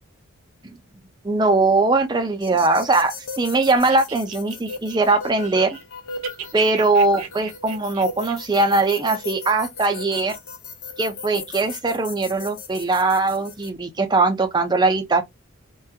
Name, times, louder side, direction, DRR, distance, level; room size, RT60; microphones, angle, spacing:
voice 1, 1.2-5.8 6.5-10.4 11.0-15.2, right 3 dB, 20° right, 0.4 m, -20 dB
sound 1, 2.4-13.7, left 4 dB, 85° left, 0.6 m, -37 dB
sound 2, 3.8-5.9 6.1-8.7, right 7 dB, 85° right, 0.6 m, -35 dB
2.4 x 2.2 x 2.7 m
head